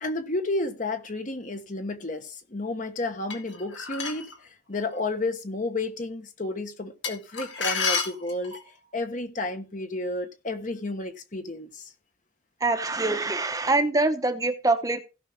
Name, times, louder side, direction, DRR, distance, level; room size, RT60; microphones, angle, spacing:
voice 1, 0.0-4.3 4.7-8.6 8.9-11.9, left 2 dB, 45° left, 1.2 m, -31 dB
sound 1, 3.3-4.3 7.0-8.7, left 5 dB, 80° left, 2.2 m, -30 dB
voice 2, 12.6-15.0, right 2 dB, 20° right, 0.8 m, -24 dB
16.5 x 5.8 x 3.6 m
head